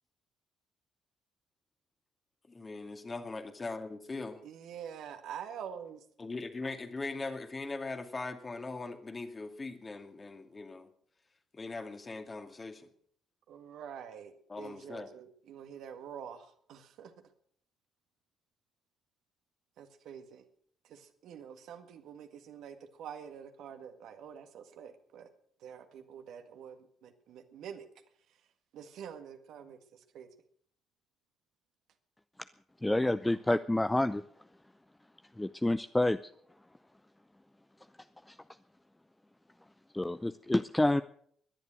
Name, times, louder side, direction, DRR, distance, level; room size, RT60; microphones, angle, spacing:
voice 1, 2.5-4.4 6.2-10.9 11.5-12.9 14.5-15.1, left 3 dB, 25° left, 6 dB, 2.3 m, -40 dB
voice 2, 4.4-6.0 13.5-17.1 19.8-20.5 20.8-25.3 25.6-27.9 28.7-30.3, right 8 dB, 60° right, 7 dB, 1.8 m, -47 dB
voice 3, 32.8-34.2 35.4-36.2 38.3-38.4 39.9-41.0, left 1 dB, 10° left, 12 dB, 0.6 m, -28 dB
21.0 x 11.0 x 6.4 m, 0.64 s
figure-of-eight pair, 45°, 0 cm